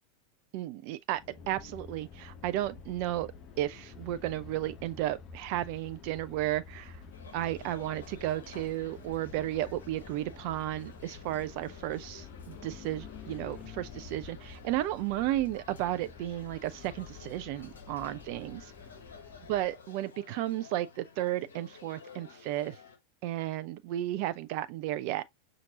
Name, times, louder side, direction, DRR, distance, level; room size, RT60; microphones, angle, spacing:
voice 1, 0.5-1.2 1.5-7.0 7.3-18.7 19.5-22.8 23.2-25.2, right 14 dB, 45° right, 0.4 m, -33 dB
sound 1, 1.1-19.9, left 5 dB, 35° left, 0.8 m, -49 dB
sound 2, 7.1-23.0, left 5 dB, 65° left, 0.9 m, -53 dB
5.8 x 2.5 x 2.7 m
figure-of-eight pair, 90°, 0 cm